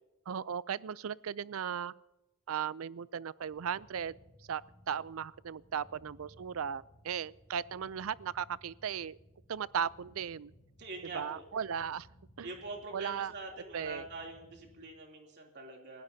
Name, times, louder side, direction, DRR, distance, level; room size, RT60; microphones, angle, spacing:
voice 1, 0.3-1.9 2.5-4.1 4.5-9.2 9.5-10.5 11.0-12.1 12.4-12.5 12.9-13.3 13.7-14.1, right 7 dB, 65° right, 20 dB, 0.4 m, -37 dB
sound 1, 3.4-14.8, equal, 60° left, 6.6 m, -61 dB
voice 2, 10.8-11.4 12.4-16.0, right 2 dB, 50° right, 1 dB, 3.0 m, -44 dB
29.0 x 16.5 x 2.8 m, 1.0 s
head